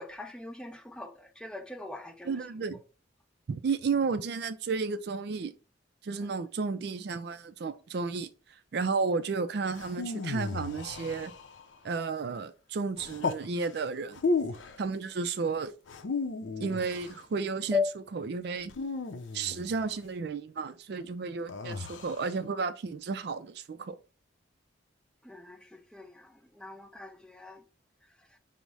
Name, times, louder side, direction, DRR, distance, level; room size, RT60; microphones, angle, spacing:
voice 1, 0.0-2.4 17.7-17.9 25.2-27.6, left 4 dB, 5° left, 0.5 m, -37 dB
voice 2, 2.2-2.8 3.5-5.5 6.0-8.3 8.7-11.3 11.8-14.2 14.8-15.7 16.6-17.8 18.1-18.7 19.3-24.0, right 4 dB, 55° right, 0.4 m, -32 dB
sound 1, 9.7-11.7 13.0-13.5 14.1-14.8 15.9-17.2 18.7-19.9 21.5-22.3, left 3 dB, 75° left, 0.5 m, -34 dB
5.4 x 2.1 x 4.6 m
head